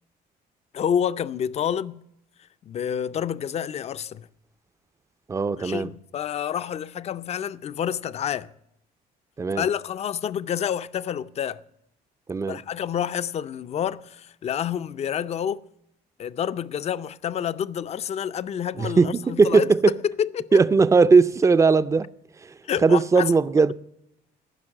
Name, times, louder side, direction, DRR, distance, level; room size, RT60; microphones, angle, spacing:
voice 1, 0.7-2.0 2.6-4.3 5.5-8.5 9.5-11.6 12.5-15.6 16.2-19.7 20.0-20.6 22.6-23.3, left 9 dB, 40° left, 0.5 m, -28 dB
voice 2, 5.3-5.9 9.4-9.7 12.3-12.6 18.8-19.9 20.5-22.1 22.4-23.7, right 4 dB, 20° right, 0.4 m, -19 dB
14.5 x 5.9 x 8.7 m
cardioid pair, 110°, 17 cm